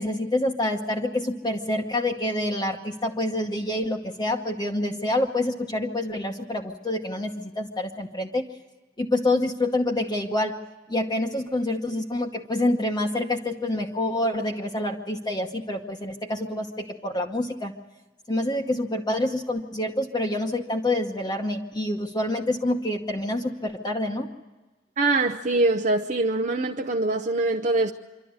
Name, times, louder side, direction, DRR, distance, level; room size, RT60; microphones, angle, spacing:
voice 1, 0.0-8.4 9.0-10.6 10.9-17.7 18.3-24.3, left 1 dB, 20° left, 1.0 m, -27 dB
voice 2, 25.0-27.9, right 2 dB, 40° right, 0.7 m, -23 dB
26.0 x 12.5 x 9.6 m
head